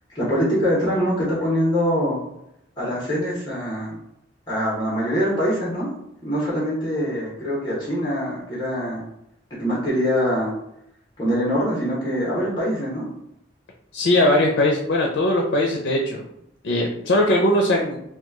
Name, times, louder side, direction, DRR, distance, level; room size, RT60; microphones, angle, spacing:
voice 1, 0.1-2.2 2.8-4.0 4.5-5.9 6.2-9.0 9.5-10.5 11.2-13.1, equal, 25° left, -7 dB, 1.0 m, -23 dB
voice 2, 13.9-16.2 16.6-18.0, left 1 dB, 75° left, 0 dB, 0.5 m, -20 dB
3.0 x 2.3 x 3.5 m, 0.79 s
head